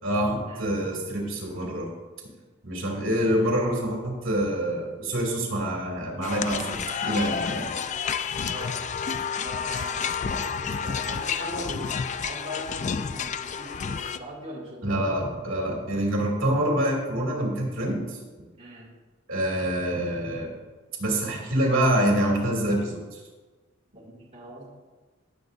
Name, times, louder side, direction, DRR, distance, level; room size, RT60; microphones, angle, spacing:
voice 1, 0.0-1.9 2.6-7.6 14.8-18.2 19.3-20.5 21.0-23.2, right 1 dB, 65° right, -1 dB, 2.6 m, -26 dB
sound 1, 6.2-14.2, left 6 dB, 35° left, 0.4 m, -30 dB
voice 2, 8.5-8.8 9.4-15.2 18.6-18.9 23.9-24.7, equal, 30° right, -6 dB, 2.2 m, -40 dB
18.5 x 7.3 x 2.6 m, 1.3 s
head